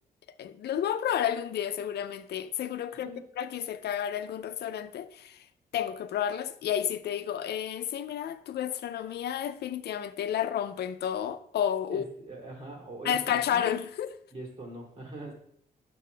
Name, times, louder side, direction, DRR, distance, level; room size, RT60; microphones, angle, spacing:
voice 1, 0.4-5.5 5.7-12.0 13.0-14.1, left 9 dB, 85° left, 0.5 m, -31 dB
voice 2, 2.9-3.2 11.9-13.7 14.3-15.3, right 2 dB, 40° right, 3.0 m, -42 dB
9.4 x 6.7 x 3.4 m
cardioid pair, 100°, 17 cm